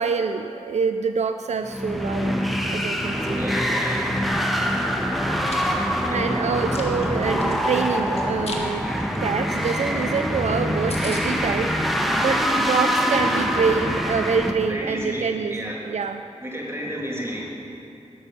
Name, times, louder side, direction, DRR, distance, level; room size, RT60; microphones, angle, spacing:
voice 1, 0.0-3.4 5.7-16.2, right 5 dB, 70° right, 8 dB, 0.4 m, -26 dB
sound 1, 1.6-14.5, equal, ahead, 1.1 m, -24 dB
voice 2, 3.2-4.3 6.1-6.3 14.7-15.9 16.4-17.5, equal, 20° right, -2 dB, 2.4 m, -32 dB
Chewing mastication, 5.4-5.6 6.1-7.6 8.1-8.6 9.0-9.2 9.5-9.6 9.9-10.0 10.3-10.4 10.6-10.7 10.9-11.2, left 3 dB, 60° left, 1.5 m, -37 dB
12.5 x 6.4 x 6.9 m, 2.6 s
cardioid pair, 55°, 12 cm